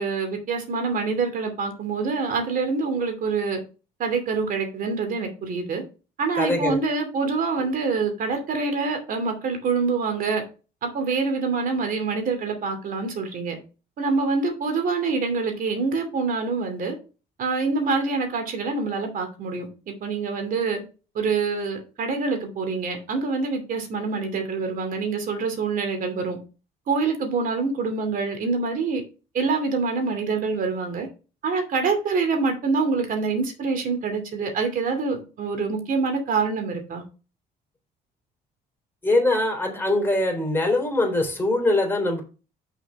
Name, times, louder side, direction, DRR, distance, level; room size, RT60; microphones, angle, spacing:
voice 1, 0.0-3.6 4.0-5.8 6.2-10.4 10.8-13.6 14.0-17.0 17.4-20.8 21.1-26.4 26.9-29.0 29.3-31.1 31.4-37.0, right 4 dB, 55° right, 2.6 m, -26 dB
voice 2, 6.3-6.8 39.0-42.2, left 2 dB, 15° left, 3.5 m, -22 dB
6.4 x 5.0 x 5.4 m
cardioid pair, 110°, 17 cm